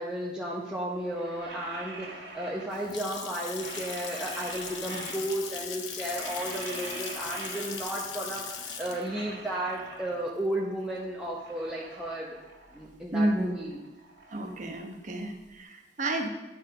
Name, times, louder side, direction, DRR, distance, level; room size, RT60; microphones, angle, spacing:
voice 1, 0.0-12.4 12.7-13.8, right 1 dB, 5° right, -5 dB, 0.9 m, -34 dB
sound 1, 0.9-3.1 3.4-5.6 5.9-8.1 8.4-10.5 10.9-12.9 13.2-15.4, right 2 dB, 70° right, 2.2 m, -45 dB
Water tap faucet / Sink (filling or washing) / Splash splatter, 2.5-11.3, left 6 dB, 80° left, 0.9 m, -40 dB
voice 2, 13.1-13.5 14.3-16.3, right 1 dB, 45° right, 4 dB, 1.0 m, -30 dB
11.0 x 4.3 x 5.4 m, 1.1 s
head